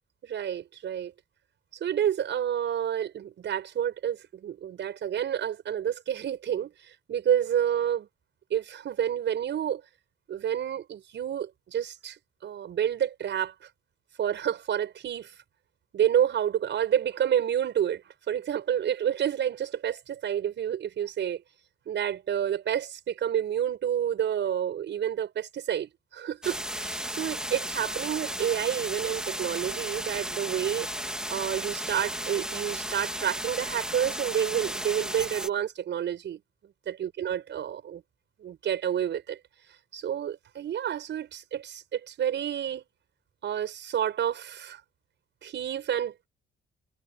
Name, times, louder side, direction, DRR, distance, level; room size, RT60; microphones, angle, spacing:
voice 1, 0.2-1.1 1.8-8.1 8.5-9.8 10.3-13.5 14.2-15.3 15.9-21.4 21.9-30.9 31.3-36.4 36.9-38.0 38.4-39.4 39.9-42.8 43.4-44.8 45.4-46.3, right 9 dB, 65° right, 6.1 m, -29 dB
sound 1, 26.4-35.5, equal, 5° right, 3.2 m, -34 dB
cardioid pair, 90°, 20 cm